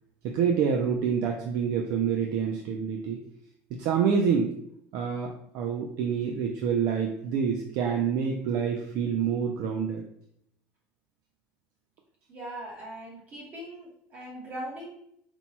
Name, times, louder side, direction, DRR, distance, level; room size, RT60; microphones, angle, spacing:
voice 1, 0.2-3.2 3.7-4.5 4.9-10.0, right 7 dB, 55° right, 2 dB, 0.5 m, -27 dB
voice 2, 12.3-14.9, right 1 dB, 30° right, -4 dB, 1.0 m, -40 dB
4.4 x 2.2 x 4.2 m, 0.73 s
cardioid pair, 165°, 6 cm